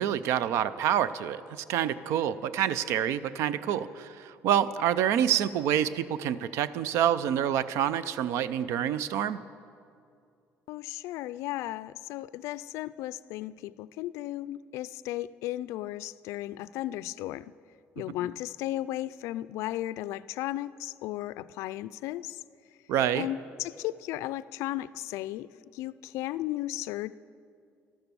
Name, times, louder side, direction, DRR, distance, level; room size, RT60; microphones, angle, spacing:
voice 1, 0.0-9.4 22.9-23.3, right 10 dB, 75° right, 16 dB, 0.5 m, -27 dB
voice 2, 10.7-17.5 18.0-22.4 23.1-27.1, left 15 dB, 80° left, 17 dB, 0.3 m, -35 dB
13.0 x 13.0 x 6.9 m, 2.4 s
cardioid pair, 155°, 5 cm